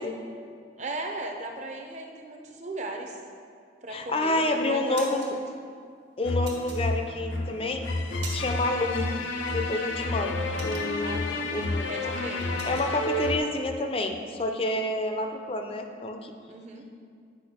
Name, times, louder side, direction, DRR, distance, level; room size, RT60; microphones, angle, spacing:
voice 1, 0.8-3.2 3.8-5.2 11.0-11.5 11.9-12.4 16.5-16.8, right 2 dB, 35° right, 3 dB, 0.7 m, -37 dB
voice 2, 3.9-5.3 6.2-7.9 8.3-9.1 9.5-11.2 11.5-12.2 12.6-16.3, left 2 dB, 30° left, 5 dB, 0.5 m, -29 dB
sound 1, 3.9-4.3 4.7-5.3 6.4-7.3 7.8-8.7 9.0-9.2 9.6-11.3 11.7-11.9 12.1-12.9, right 4 dB, 65° right, 1.5 m, -42 dB
sound 2, 6.2-13.4, left 2 dB, 85° left, 0.6 m, -30 dB
8.5 x 5.3 x 4.3 m, 2.2 s
head